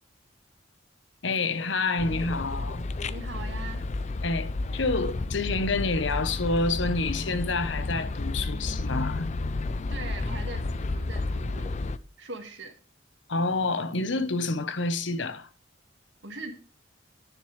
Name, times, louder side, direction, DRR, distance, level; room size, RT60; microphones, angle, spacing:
voice 1, 1.2-2.8 4.2-9.3 13.3-15.5, left 3 dB, 70° left, 1.0 m, -28 dB
sound 1, 2.0-12.0, left 2 dB, 35° left, 0.5 m, -31 dB
voice 2, 3.1-3.9 9.9-11.7 12.2-12.7 16.2-16.6, right 3 dB, 70° right, 2.0 m, -41 dB
10.0 x 9.8 x 3.3 m
head